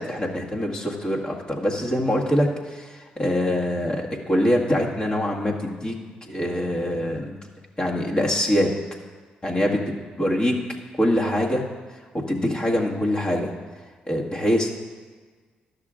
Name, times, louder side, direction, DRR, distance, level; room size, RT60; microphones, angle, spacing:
voice 1, 0.0-5.9 6.2-7.4 7.8-8.7 9.4-10.6 11.0-11.7 12.1-13.5 14.1-14.7, equal, 25° left, -2 dB, 1.8 m, -24 dB
11.5 x 6.6 x 3.7 m, 1.5 s
hypercardioid pair, 50°, 4 cm